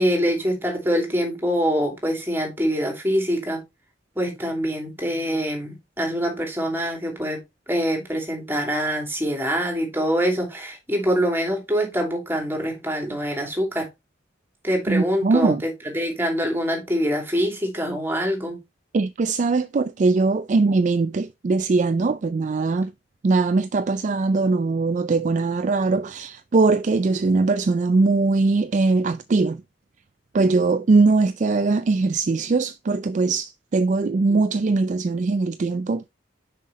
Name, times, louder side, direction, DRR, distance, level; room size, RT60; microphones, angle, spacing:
voice 1, 0.0-3.6 4.1-7.4 7.7-13.9 14.6-18.6, equal, 10° right, 2.8 m, -24 dB
voice 2, 14.9-15.6 18.9-22.9 23.2-29.6 30.3-36.1, right 3 dB, 40° right, 0.4 m, -21 dB
6.4 x 5.6 x 4.1 m
head